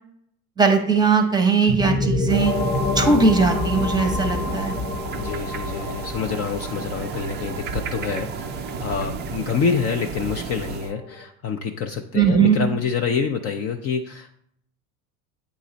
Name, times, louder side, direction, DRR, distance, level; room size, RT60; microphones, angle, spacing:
voice 1, 0.6-2.5 3.0-4.8 12.1-12.6, right 5 dB, 10° right, 5 dB, 0.8 m, -19 dB
sound 1, 1.7-11.2, left 2 dB, 85° left, 1.0 m, -28 dB
sound 2, 2.3-10.9, right 6 dB, 25° right, 0.4 m, -33 dB
voice 2, 5.2-14.4, left 6 dB, 35° left, 3 dB, 0.5 m, -27 dB
8.5 x 3.1 x 3.9 m, 0.68 s
hypercardioid pair, 95°, 43 cm